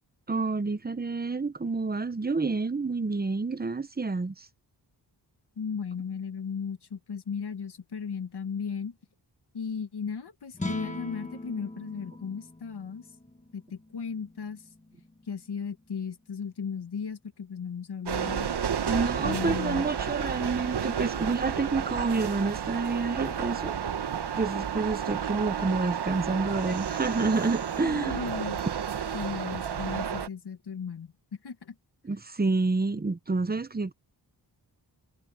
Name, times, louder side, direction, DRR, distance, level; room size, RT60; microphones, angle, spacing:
voice 1, 0.3-4.5 18.9-23.8 24.4-28.2 32.0-33.9, right 3 dB, 20° right, 0.9 m, -29 dB
voice 2, 5.6-8.9 9.5-13.0 13.5-14.6 15.3-18.5 19.2-19.9 27.8-28.7 29.1-31.1 31.4-31.7, left 6 dB, 70° left, 1.7 m, -36 dB
sound 1, 10.5-16.9, left 2 dB, 15° left, 1.3 m, -42 dB
sound 2, 18.1-30.3, right 8 dB, 70° right, 1.2 m, -31 dB
wide cardioid pair, 100°, 42 cm